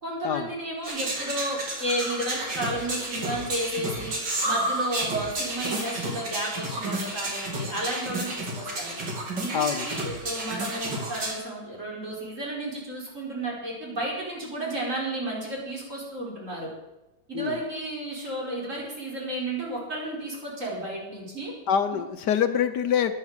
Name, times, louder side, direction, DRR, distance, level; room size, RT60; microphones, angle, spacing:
voice 1, 0.0-4.2 4.4-9.0 9.4-16.7 17.3-21.5, right 1 dB, 45° right, -4 dB, 5.2 m, -32 dB
sound 1, 0.8-11.3, right 1 dB, 75° right, 3.4 m, -31 dB
voice 2, 9.5-9.9 17.3-17.6 21.7-23.1, left 8 dB, 70° left, 10 dB, 1.4 m, -25 dB
13.0 x 11.5 x 6.6 m, 0.98 s
omnidirectional pair, 1.9 m